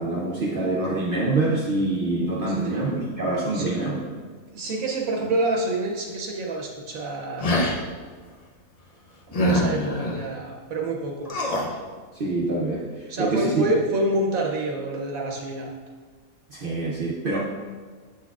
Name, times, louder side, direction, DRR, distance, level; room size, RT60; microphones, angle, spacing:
voice 1, 0.0-4.1 12.1-13.6 16.5-17.4, right 2 dB, 50° right, -3 dB, 0.7 m, -25 dB
voice 2, 3.5-3.9 4.5-7.5 9.3-11.3 13.1-15.7, right 2 dB, 80° right, 0 dB, 1.2 m, -27 dB
sound 1, 7.4-7.8 9.3-10.2 11.3-11.7, equal, 45° left, 0.5 m, -24 dB
7.2 x 5.9 x 2.4 m, 1.6 s
omnidirectional pair, 1.4 m